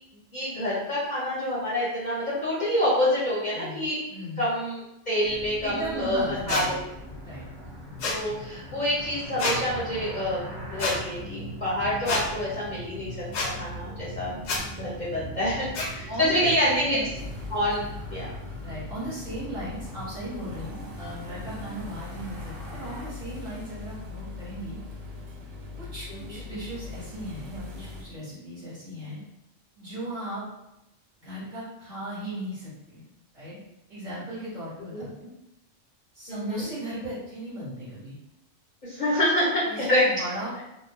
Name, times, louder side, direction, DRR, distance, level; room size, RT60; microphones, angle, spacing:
voice 1, 0.3-4.0 4.4-6.2 6.5-6.8 8.0-10.4 10.7-13.2 13.4-14.3 14.7-17.0 17.5-17.9 18.1-18.3 26.1-26.4 34.9-35.0 36.3-36.7 38.8-40.0, left 1 dB, 45° left, -7 dB, 0.7 m, -27 dB
voice 2, 4.1-4.5 5.6-6.7 7.2-7.4 15.8-17.1 18.6-24.8 25.8-29.2 29.8-30.5 31.2-33.0 33.3-33.6 33.9-35.3 36.1-38.2 39.6-40.6, right 1 dB, 40° right, -8 dB, 1.2 m, -36 dB
sound 1, 5.2-23.1, equal, 85° right, 1.0 m, -40 dB
sound 2, 6.5-6.6 8.0-8.2 9.4-9.6 10.8-10.9 12.1-12.2 13.3-13.5 14.4-14.6 15.7-15.9, left 3 dB, 75° left, 0.9 m, -27 dB
sound 3, 17.2-28.0, left 3 dB, 60° right, 0.5 m, -41 dB
2.6 x 2.0 x 3.2 m, 0.89 s
omnidirectional pair, 1.2 m